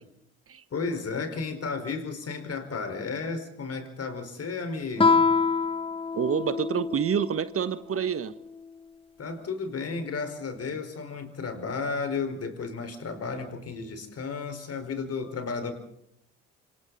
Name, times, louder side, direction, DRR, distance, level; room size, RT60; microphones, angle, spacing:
voice 1, 0.7-5.3 9.2-15.7, left 4 dB, 45° left, 7 dB, 5.1 m, -33 dB
Guitar, 5.0-7.4, left 4 dB, 15° left, 0.9 m, -25 dB
voice 2, 6.1-8.3, right 8 dB, 40° right, 14 dB, 1.3 m, -27 dB
27.5 x 26.5 x 4.2 m, 0.73 s
hypercardioid pair, 50°, 34 cm